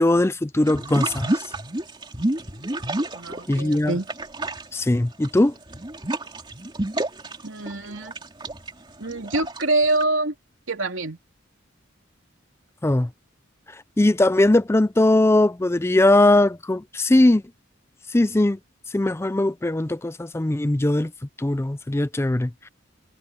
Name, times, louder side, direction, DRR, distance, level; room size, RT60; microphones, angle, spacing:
voice 1, 0.0-1.4 3.5-3.9 4.7-5.5 12.8-13.1 14.0-17.4 18.1-18.6 18.9-21.1 21.4-22.7, left 1 dB, 15° left, 0.4 m, -20 dB
sound 1, 0.7-3.8 4.0-10.0, right 1 dB, 25° right, 3.0 m, -29 dB
voice 2, 3.1-4.1 7.4-8.1 9.0-10.3 10.7-11.2, right 2 dB, 75° right, 3.3 m, -25 dB
head